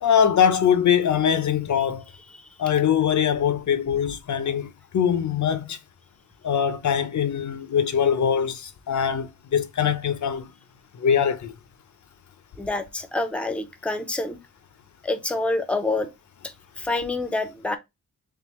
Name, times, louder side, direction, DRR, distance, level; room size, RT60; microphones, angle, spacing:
voice 1, 0.0-2.0 2.6-5.8 6.4-10.5 11.0-11.5, left 8 dB, 60° left, 0.6 m, -22 dB
voice 2, 12.6-14.4 15.0-16.1 16.4-17.8, left 2 dB, 5° left, 0.6 m, -27 dB
3.6 x 3.4 x 3.0 m
wide cardioid pair, 105°, 34 cm